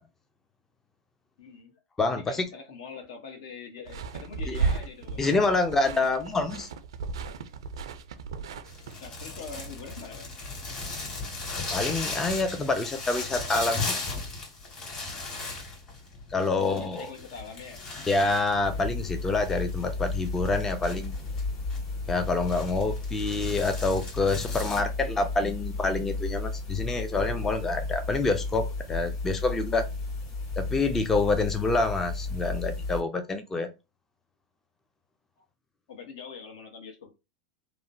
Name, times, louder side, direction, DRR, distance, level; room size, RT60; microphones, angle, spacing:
voice 1, 1.4-1.7 2.1-5.3 9.0-10.3 16.5-17.8 35.9-37.1, left 5 dB, 75° left, 1.0 m, -43 dB
voice 2, 2.0-2.5 4.5-4.6 5.2-6.7 11.7-13.9 16.3-17.1 18.1-21.2 22.1-29.8 30.6-33.7, left 3 dB, 15° left, 0.4 m, -27 dB
sound 1, 3.9-8.9, right 5 dB, 85° right, 0.4 m, -34 dB
sound 2, 8.7-24.8, left 3 dB, 35° left, 1.8 m, -37 dB
sound 3, 18.6-33.0, left 3 dB, 55° left, 1.7 m, -34 dB
3.0 x 2.1 x 2.6 m
hypercardioid pair, 115°, 3 cm